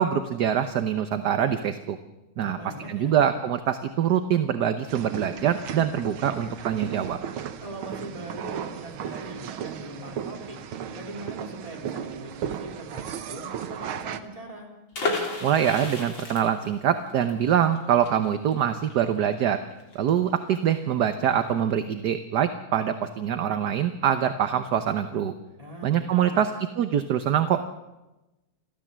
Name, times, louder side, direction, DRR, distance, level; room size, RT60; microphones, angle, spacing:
voice 1, 0.0-2.0 2.4-2.6 2.9-7.2 15.4-19.6 19.9-25.3 25.8-27.6, right 9 dB, 60° right, 10 dB, 1.3 m, -24 dB
voice 2, 2.4-3.1 7.6-10.6 10.9-14.7 25.6-26.4, right 1 dB, 15° right, 0 dB, 4.2 m, -41 dB
sound 1, 4.9-14.2, right 8 dB, 80° right, 1.9 m, -35 dB
sound 2, 14.9-20.6 20.9-21.0 21.2-21.5, left 3 dB, 65° left, 4.4 m, -33 dB
29.5 x 13.0 x 7.4 m, 1.0 s
omnidirectional pair, 2.3 m